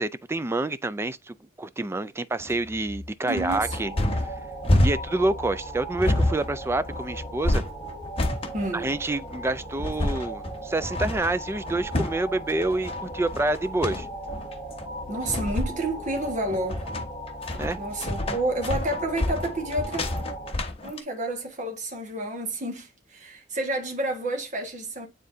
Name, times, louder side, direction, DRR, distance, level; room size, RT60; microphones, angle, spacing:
voice 1, 0.0-4.2 4.8-7.6 8.7-14.1 17.6-17.8, right 2 dB, 15° right, 0.3 m, -28 dB
sound 1, 2.4-21.0, left 1 dB, 30° left, 1.2 m, -28 dB
voice 2, 3.2-3.9 8.5-8.9 15.1-16.8 17.8-20.0 20.8-25.1, right 1 dB, 40° right, 1.5 m, -30 dB
sound 2, 3.6-20.5, right 1 dB, 10° left, 2.7 m, -38 dB
9.6 x 3.8 x 2.6 m
head